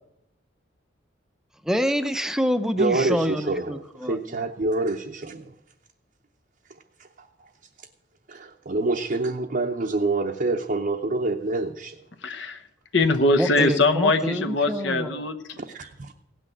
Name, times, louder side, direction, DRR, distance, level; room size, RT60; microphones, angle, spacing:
voice 1, 1.6-4.2 13.3-15.2, equal, 5° right, 10 dB, 0.6 m, -26 dB
voice 2, 2.8-5.4 7.0-7.3 8.3-11.9 15.5-16.1, right 2 dB, 45° right, 2 dB, 0.7 m, -27 dB
voice 3, 12.2-12.6 12.9-15.3, left 2 dB, 60° left, 6 dB, 1.0 m, -22 dB
16.5 x 6.3 x 9.0 m, 0.85 s
head